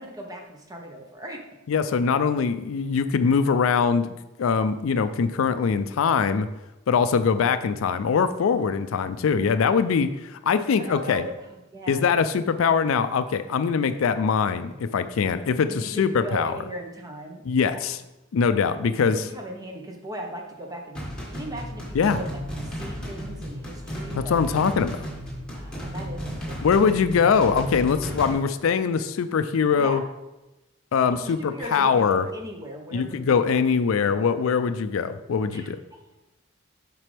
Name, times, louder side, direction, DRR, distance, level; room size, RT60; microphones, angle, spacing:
voice 1, 0.0-1.4 10.8-12.1 15.7-17.9 18.9-21.0 21.3-24.4 25.5-26.8 29.8-30.1 31.1-33.6 35.5-36.0, equal, 20° right, 1 dB, 0.9 m, -38 dB
voice 2, 1.7-4.1 4.4-6.5 6.9-11.2 11.9-16.5 17.5-18.0 18.3-19.2 21.9-22.2 24.2-25.1 26.6-30.0 30.9-32.3 32.9-35.8, left 6 dB, 85° left, 11 dB, 0.4 m, -22 dB
sound 1, 20.9-28.3, equal, 5° left, 1.6 m, -34 dB
7.4 x 5.2 x 3.3 m, 0.99 s
head